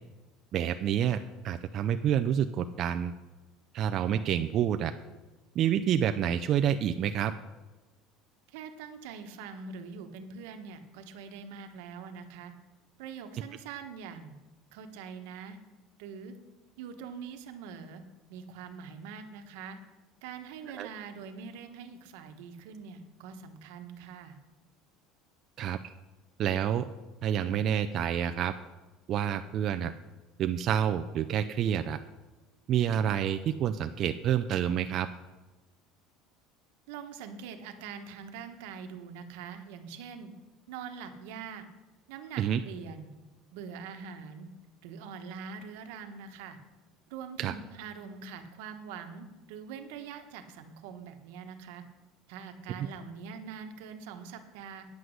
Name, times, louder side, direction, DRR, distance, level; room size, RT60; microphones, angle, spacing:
voice 1, 0.5-3.1 3.7-4.9 5.6-7.3 20.8-20.9 25.6-25.9 26.4-26.9 27.2-28.5 29.1-29.9 30.4-32.0 32.7-35.1 42.4-42.6 47.4-47.5, right 9 dB, 40° right, 8 dB, 0.4 m, -28 dB
voice 2, 8.5-12.5 13.0-14.3 14.7-15.6 16.0-16.4 16.8-18.0 18.3-19.8 20.2-24.4 36.9-40.3 40.7-41.6 42.1-43.1 43.5-44.5 44.8-46.6 47.1-51.8 52.3-54.9, right 6 dB, 80° right, 7 dB, 1.1 m, -43 dB
9.4 x 8.0 x 6.4 m, 1.2 s
cardioid pair, 150°, 0 cm